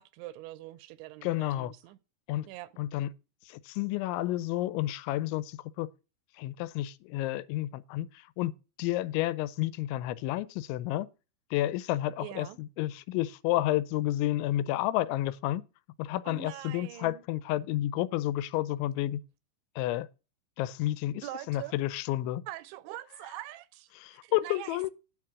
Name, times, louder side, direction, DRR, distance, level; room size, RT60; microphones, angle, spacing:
voice 1, 0.0-2.0 2.4-2.7 12.2-12.6 16.3-17.2 21.2-21.8 22.5-24.9, right 15 dB, 85° right, 2.9 m, -43 dB
voice 2, 1.2-1.7 2.3-2.5 2.8-3.1 3.5-5.9 6.3-8.5 8.8-11.1 11.5-15.6 16.0-19.2 19.8-20.1 20.6-22.4 23.9-24.9, left 15 dB, 85° left, 3.0 m, -31 dB
9.6 x 4.7 x 7.3 m
omnidirectional pair, 5.2 m